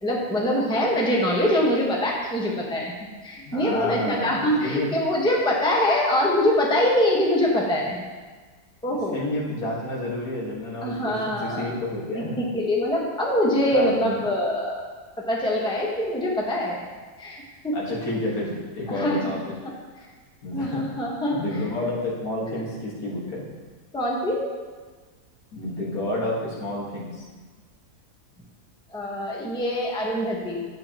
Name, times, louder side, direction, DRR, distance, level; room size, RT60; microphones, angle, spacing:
voice 1, 0.0-2.9 3.2-8.1 8.8-9.2 10.8-11.7 12.1-14.8 15.3-16.8 17.2-17.8 18.9-19.3 20.5-21.4 23.9-24.5 28.9-30.6, left 1 dB, 5° left, -3 dB, 1.1 m, -24 dB
voice 2, 3.5-4.9 8.9-12.5 13.7-14.2 17.7-19.5 20.4-20.9 21.3-23.4 25.5-27.3, left 1 dB, 70° left, -5 dB, 2.2 m, -30 dB
11.5 x 7.6 x 2.9 m, 1.4 s
omnidirectional pair, 1.6 m